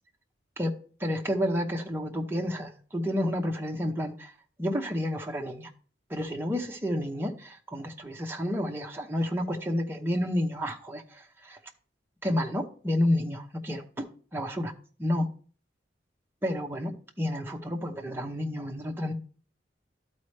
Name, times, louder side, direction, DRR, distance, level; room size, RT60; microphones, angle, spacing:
voice 1, 1.0-5.7 6.1-11.6 12.2-14.1 14.3-14.7 15.0-15.3 16.4-19.1, left 1 dB, 10° right, 0.8 m, -30 dB
12.5 x 4.2 x 3.2 m
head